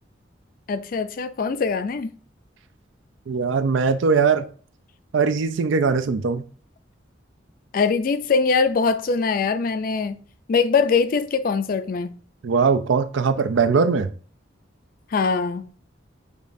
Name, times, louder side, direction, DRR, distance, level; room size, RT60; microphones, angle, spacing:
voice 1, 0.7-2.1 7.7-10.2 10.5-12.1 15.1-15.7, left 5 dB, 50° left, 0.4 m, -22 dB
voice 2, 3.3-4.5 5.1-6.4 12.4-14.1, right 5 dB, 90° right, 0.4 m, -20 dB
6.9 x 2.4 x 2.6 m
head